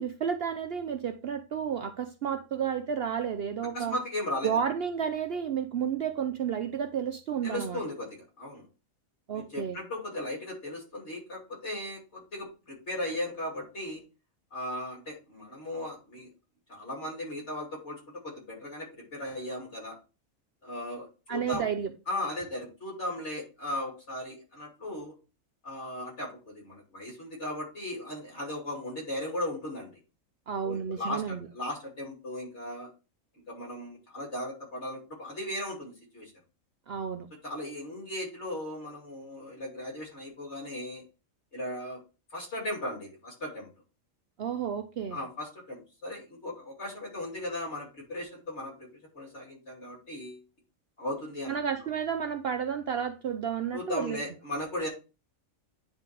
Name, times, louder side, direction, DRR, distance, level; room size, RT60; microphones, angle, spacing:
voice 1, 0.0-4.0 4.4-7.8 9.3-9.8 21.3-21.9 30.5-31.4 36.9-37.3 44.4-45.2 51.5-54.2, right 7 dB, 60° right, 0.7 m, -31 dB
voice 2, 3.7-4.6 7.4-8.7 9.3-14.0 14.5-16.3 16.7-20.0 20.6-21.6 22.1-25.2 25.6-30.0 30.6-32.9 33.5-36.3 37.4-41.0 41.5-42.0 42.3-43.7 45.1-48.9 49.1-50.4 51.0-51.6 53.7-54.9, left 1 dB, 55° left, 3.0 m, -37 dB
9.6 x 4.1 x 3.2 m
omnidirectional pair, 1.4 m